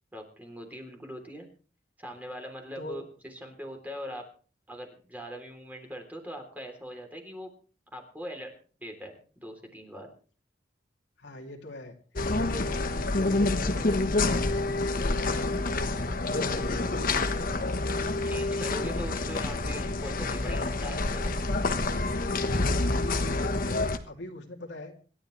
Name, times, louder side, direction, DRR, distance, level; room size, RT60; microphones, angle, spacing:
voice 1, 0.1-1.5 2.0-4.2 4.7-7.5 7.9-8.5 8.8-10.1 18.3-21.4, equal, 10° right, 3 dB, 3.4 m, -41 dB
voice 2, 11.2-11.9 12.2-14.1 14.5-15.9 16.4-17.2 22.7-23.1 23.6-24.9, left 1 dB, 90° left, 0 dB, 2.9 m, -41 dB
sound 1, 12.2-24.0, left 2 dB, 55° left, 1.2 m, -28 dB
26.5 x 11.5 x 3.3 m, 0.41 s
head